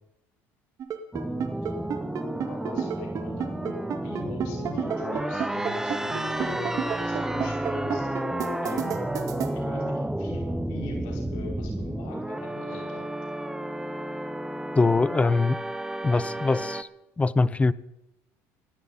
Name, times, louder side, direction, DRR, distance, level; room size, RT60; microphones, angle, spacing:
sound 1, 0.8-9.5, right 8 dB, 45° right, 2.2 m, -30 dB
sound 2, 1.1-16.8, right 1 dB, 5° right, 0.9 m, -31 dB
voice 1, 2.5-6.7 7.0-8.1 8.6-9.0 9.5-13.1, left 3 dB, 75° left, 5.0 m, -43 dB
voice 2, 14.8-15.6 16.0-16.9 17.2-17.7, left 3 dB, 15° left, 0.6 m, -22 dB
19.5 x 16.0 x 4.1 m
supercardioid pair, 95°, 8 cm